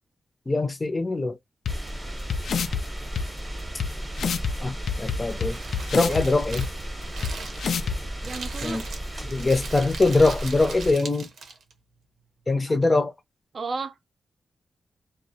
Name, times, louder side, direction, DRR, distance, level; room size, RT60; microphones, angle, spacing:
voice 1, 0.5-1.4 4.6-5.6 5.9-6.6 8.6-8.8 9.3-11.3 12.5-13.1, left 2 dB, 30° left, 0.5 m, -22 dB
sound 1, 1.7-1.8 2.3-2.8 3.2-3.3 3.8-3.9 4.2-4.5 4.9-6.2 6.6-6.7 7.2-7.3 7.6-8.0, left 6 dB, 80° left, 0.3 m, -26 dB
sound 2, 1.7-10.9, right 1 dB, 15° right, 0.8 m, -35 dB
Crumpling crinkling, 5.0-11.7, right 4 dB, 90° right, 0.7 m, -41 dB
voice 2, 8.2-8.8 13.5-14.0, right 4 dB, 50° right, 0.4 m, -33 dB
2.3 x 2.0 x 2.7 m
wide cardioid pair, 100°, 0 cm